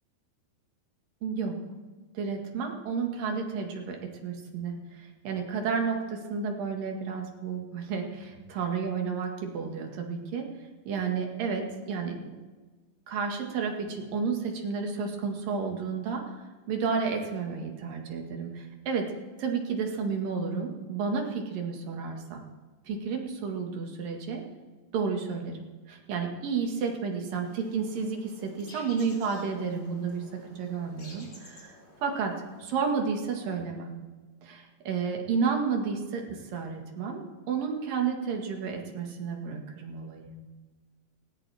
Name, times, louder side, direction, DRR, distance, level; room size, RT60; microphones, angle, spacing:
voice 1, 1.2-1.5 2.2-4.0 4.2-8.1 8.5-10.5 10.9-12.2 13.1-16.4 16.7-19.1 19.4-22.4 22.9-24.4 24.9-25.6 25.9-31.7 32.0-32.3 32.6-33.9 34.4-37.2 37.5-40.3, right 5 dB, 75° right, 2 dB, 3.4 m, -31 dB
sound 1, 27.4-32.6, left 1 dB, 30° left, 4.3 m, -53 dB
18.0 x 18.0 x 3.5 m, 1.4 s
omnidirectional pair, 4.0 m